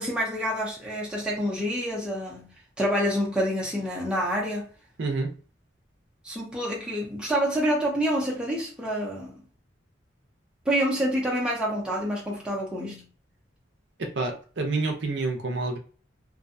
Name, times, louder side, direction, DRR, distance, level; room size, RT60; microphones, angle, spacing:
voice 1, 0.0-4.7 6.2-9.4 10.6-13.1, equal, 5° right, 0.6 m, -27 dB
voice 2, 5.0-5.3 14.0-15.8, right 3 dB, 65° right, 0.5 m, -28 dB
2.6 x 2.2 x 2.5 m
head